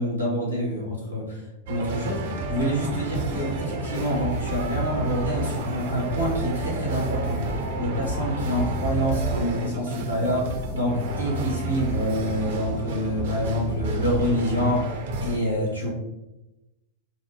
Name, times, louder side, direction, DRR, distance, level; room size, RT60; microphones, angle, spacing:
voice 1, 0.0-15.9, equal, 80° left, -4 dB, 1.5 m, -27 dB
sound 1, 1.7-15.4, right 2 dB, 55° right, 0.6 m, -31 dB
sound 2, 2.0-14.7, left 1 dB, 10° left, 0.5 m, -37 dB
4.6 x 2.1 x 3.4 m, 0.97 s
figure-of-eight pair, 90°, 0 cm